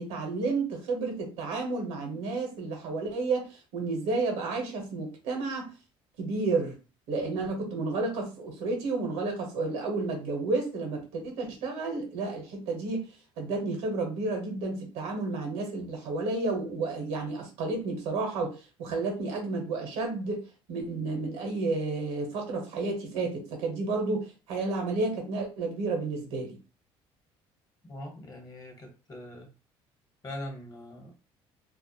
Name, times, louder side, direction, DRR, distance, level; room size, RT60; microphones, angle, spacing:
voice 1, 0.0-5.7 6.2-6.8 7.1-13.1 13.4-26.6, right 3 dB, 85° right, 2 dB, 0.8 m, -31 dB
voice 2, 27.9-29.5 30.2-31.1, left 1 dB, 30° left, 2 dB, 1.1 m, -42 dB
2.3 x 2.1 x 2.7 m, 0.33 s
supercardioid pair, 75°, 12 cm